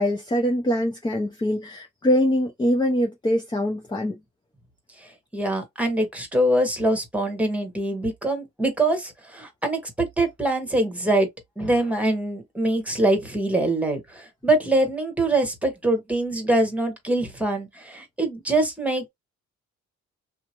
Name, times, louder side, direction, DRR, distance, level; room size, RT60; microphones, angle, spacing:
voice 1, 0.0-4.2, equal, 15° left, 0.6 m, -23 dB
voice 2, 5.0-11.3 11.6-19.1, right 1 dB, 5° right, 1.3 m, -24 dB
2.8 x 2.2 x 3.0 m
cardioid pair, 90°, 30 cm